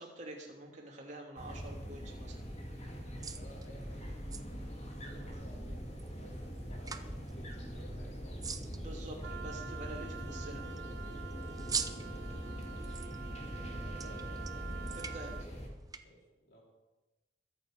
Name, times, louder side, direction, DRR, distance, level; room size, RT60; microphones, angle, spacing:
voice 1, 0.0-2.4 8.7-10.7 14.9-15.4, right 1 dB, 45° right, -1 dB, 2.9 m, -47 dB
sound 1, 1.4-15.7, equal, 40° left, 2.5 m, -42 dB
sound 2, 2.7-16.0, right 6 dB, 20° right, 0.7 m, -46 dB
voice 2, 2.9-8.4 11.2-11.8 13.5-14.3 16.0-16.6, equal, 65° left, -3 dB, 3.9 m, -57 dB
Wind instrument woodwind instrument, 9.2-15.5, right 7 dB, 80° right, 0.4 m, -48 dB
22.0 x 7.3 x 5.2 m, 1.1 s
head